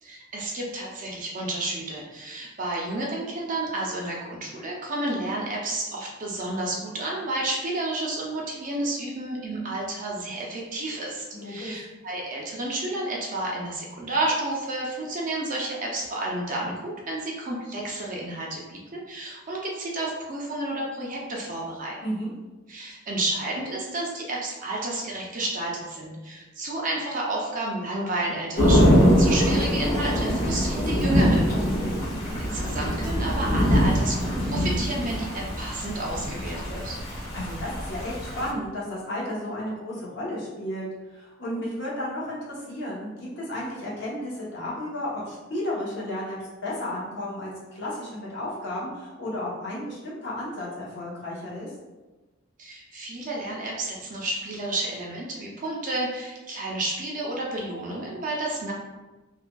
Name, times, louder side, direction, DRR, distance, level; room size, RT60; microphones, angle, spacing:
voice 1, 0.0-22.0 22.7-31.5 32.4-37.0 52.6-58.7, right 2 dB, 40° right, -2 dB, 0.5 m, -31 dB
voice 2, 11.3-11.8 22.0-22.3 31.7-32.1 37.3-51.7, left 1 dB, 60° left, -6 dB, 0.9 m, -33 dB
Thunder / Rain, 28.6-38.5, equal, 40° left, 1.2 m, -23 dB
3.4 x 2.3 x 2.3 m, 1.2 s
head